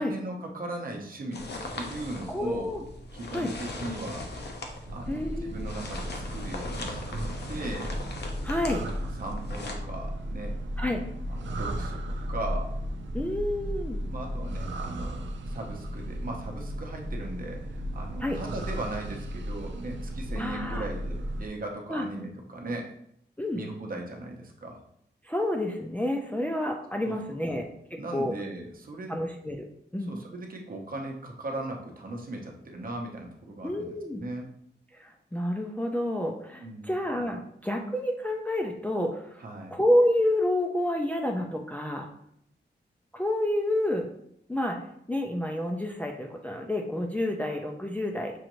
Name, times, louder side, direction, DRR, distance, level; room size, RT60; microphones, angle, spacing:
voice 1, 0.0-1.4 1.7-2.7 3.1-4.3 4.9-7.9 9.2-10.6 11.4-12.7 14.1-22.9 23.5-24.8 27.0-27.7 28.0-29.2 30.1-34.5 36.6-37.0 39.4-39.8, right 2 dB, 50° right, 1 dB, 0.7 m, -38 dB
sound 1, 1.3-9.7, left 2 dB, 65° left, 0.7 m, -39 dB
voice 2, 2.3-2.8 3.3-3.5 5.1-5.7 8.4-8.8 10.8-11.0 13.1-14.0 18.2-18.4 20.4-20.9 21.9-22.1 23.4-23.6 25.2-27.7 28.1-28.3 29.1-29.7 29.9-30.1 33.6-34.2 34.9-39.4 39.7-42.1 43.1-44.1 44.5-44.8 45.1-48.3, left 1 dB, 10° left, 1 dB, 0.4 m, -29 dB
sound 2, 4.9-21.5, equal, 90° right, 0.4 m, -35 dB
6.2 x 2.5 x 3.0 m, 0.71 s
wide cardioid pair, 175°, 19 cm